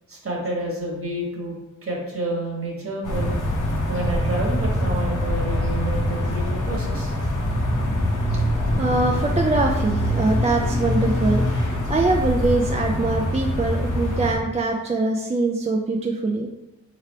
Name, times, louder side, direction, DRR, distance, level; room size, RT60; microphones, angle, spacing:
voice 1, 0.1-1.6 1.8-3.3 3.9-7.1 8.5-8.6, right 1 dB, 50° right, -1 dB, 1.4 m, -29 dB
sound 1, 3.0-14.4, left 1 dB, 85° left, 1.0 m, -24 dB
voice 2, 8.8-11.6 11.9-16.5, right 3 dB, 25° right, 1 dB, 0.4 m, -23 dB
3.5 x 3.4 x 4.4 m, 0.96 s
wide cardioid pair, 85°, 30 cm